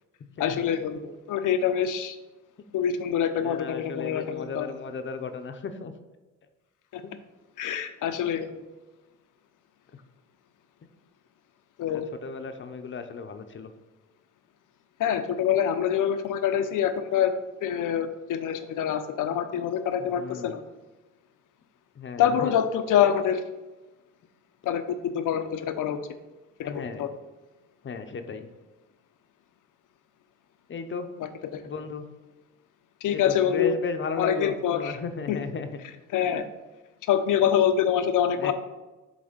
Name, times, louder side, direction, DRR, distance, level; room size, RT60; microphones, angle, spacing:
voice 1, 0.4-2.2 2.7-4.6 6.9-7.0 7.6-8.6 11.8-12.1 15.0-17.3 17.6-20.6 22.2-23.4 24.6-26.0 26.6-27.1 31.5-31.6 33.0-33.7 34.2-34.9 35.3-35.4 36.1-36.4 37.1-38.5, left 9 dB, 70° left, 9 dB, 0.7 m, -25 dB
voice 2, 3.4-5.9 7.0-7.2 9.9-10.0 11.9-13.7 20.0-20.5 21.9-22.5 26.6-27.1 27.8-28.5 30.7-31.1 31.6-32.0 33.1-35.7 38.4-38.5, left 5 dB, 35° left, 7 dB, 0.7 m, -35 dB
8.1 x 3.4 x 5.1 m, 1.1 s
cardioid pair, 105°, 32 cm